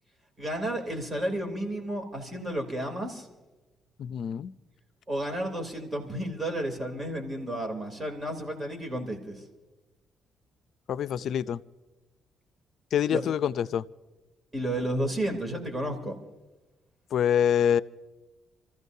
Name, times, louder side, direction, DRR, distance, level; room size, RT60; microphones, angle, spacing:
voice 1, 0.4-3.3 5.1-9.4 13.1-13.2 14.5-16.2, right 1 dB, 20° right, 3.1 m, -32 dB
voice 2, 4.0-4.5 10.9-11.6 12.9-13.8 17.1-17.8, left 9 dB, 70° left, 0.4 m, -25 dB
28.5 x 14.5 x 2.7 m
cardioid pair, 90°, 0 cm